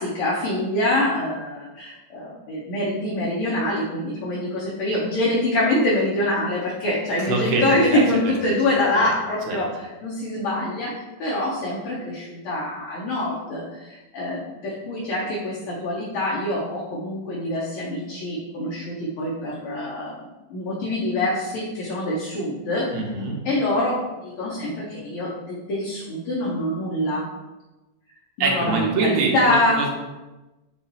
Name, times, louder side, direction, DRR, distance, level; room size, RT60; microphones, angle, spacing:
voice 1, 0.0-20.2 20.5-23.0 23.4-27.3 28.4-29.8, left 1 dB, 75° left, -6 dB, 1.7 m, -25 dB
voice 2, 7.2-8.6 8.9-9.0 9.5-9.6 22.9-23.4 28.4-29.9, right 3 dB, 80° right, 0 dB, 1.7 m, -24 dB
5.3 x 2.4 x 4.0 m, 1.1 s
omnidirectional pair, 2.4 m